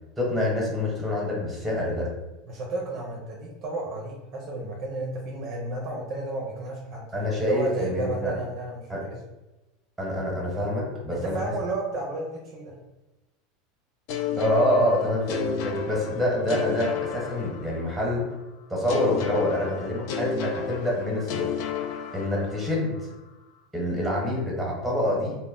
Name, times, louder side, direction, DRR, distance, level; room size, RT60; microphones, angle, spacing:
voice 1, 0.2-2.1 7.1-8.3 8.9-9.0 10.0-11.5 14.4-18.3 18.7-21.5 22.1-23.1 23.7-25.4, left 1 dB, 5° right, -4 dB, 1.1 m, -26 dB
voice 2, 2.5-7.0 7.4-9.2 11.1-12.8, right 2 dB, 45° right, -1 dB, 0.5 m, -32 dB
sound 1, 14.1-18.0 18.9-22.7, left 7 dB, 60° left, 0.3 m, -32 dB
2.1 x 2.0 x 3.6 m, 1.1 s
supercardioid pair, 120°, 0 cm